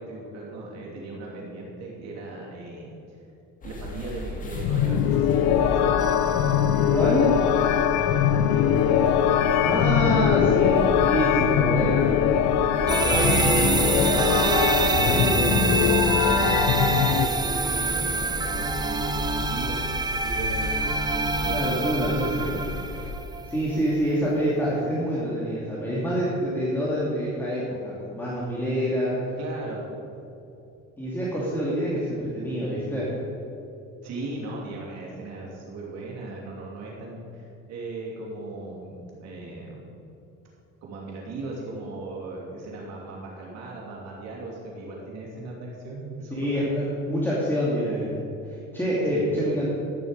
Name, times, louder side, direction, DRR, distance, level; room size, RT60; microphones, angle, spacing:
voice 1, 0.0-3.2 3.6-5.9 8.1-9.2 9.8-10.7 11.7-14.6 16.2-22.6 29.4-29.8 30.1-30.2 34.0-39.9 40.8-46.7 49.1-49.3, right 2 dB, 60° right, -3 dB, 2.9 m, -38 dB
sound 1, 3.6-23.1, left 3 dB, 25° left, 2.0 m, -36 dB
sound 2, 4.5-17.3, left 9 dB, 75° left, 0.9 m, -22 dB
sound 3, 6.0-7.8 12.9-23.8, right 3 dB, 15° right, 0.7 m, -26 dB
voice 2, 6.9-7.4 9.6-12.1 13.1-13.7 14.9-15.4 21.5-22.4 23.5-29.2 31.0-33.1 46.3-48.2 48.4-49.7, equal, 5° left, -7 dB, 2.4 m, -26 dB
13.5 x 11.0 x 5.2 m, 2.8 s
cardioid pair, 145°, 29 cm